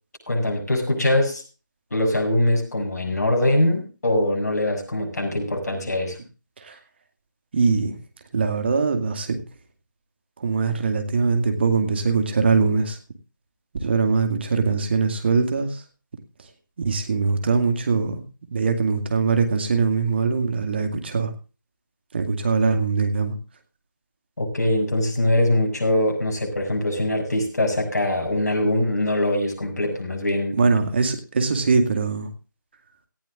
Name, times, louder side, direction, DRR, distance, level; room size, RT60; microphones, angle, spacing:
voice 1, 0.3-1.4 1.9-6.2 24.4-30.6, left 1 dB, 55° left, 2 dB, 7.0 m, -22 dB
voice 2, 7.5-8.0 8.3-9.4 10.4-13.0 13.8-15.8 16.8-18.2 18.5-21.3 22.1-23.3 30.5-32.3, right 4 dB, 30° right, 7 dB, 2.2 m, -22 dB
18.0 x 15.0 x 2.5 m, 0.33 s
figure-of-eight pair, 160°, 11 cm